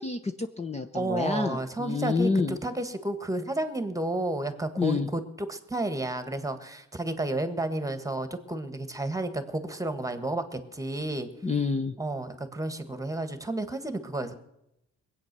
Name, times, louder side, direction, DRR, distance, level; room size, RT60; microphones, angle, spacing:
voice 1, 0.0-2.6 4.8-5.1 11.4-12.0, left 4 dB, 20° left, 7 dB, 0.8 m, -28 dB
voice 2, 0.9-11.3 12.0-14.3, right 2 dB, 10° right, 10 dB, 1.5 m, -31 dB
20.5 x 8.6 x 6.8 m, 0.85 s
cardioid pair, 90°, 30 cm